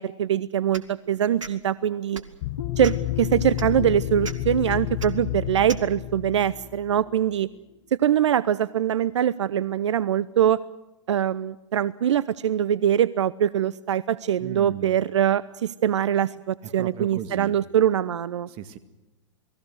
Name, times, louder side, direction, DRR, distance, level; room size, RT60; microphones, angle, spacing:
voice 1, 0.0-2.2 2.8-7.5 7.9-10.6 11.1-18.5, right 10 dB, 65° right, 19 dB, 0.8 m, -23 dB
sound 1, 0.7-0.9 1.4-1.5 2.1-2.3 2.8-3.1 3.6-3.7 4.2-4.4 5.0-5.1 5.7-5.8, right 4 dB, 80° right, 2.2 m, -36 dB
sound 2, 2.4-7.1, left 16 dB, 40° left, 0.8 m, -30 dB
sound 3, 2.6-8.1, left 8 dB, 75° left, 2.8 m, -41 dB
voice 2, 14.4-15.0 16.6-17.6 18.5-18.8, right 9 dB, 35° right, 11 dB, 2.1 m, -37 dB
29.0 x 20.5 x 6.3 m, 0.98 s
figure-of-eight pair, 110°, 16 cm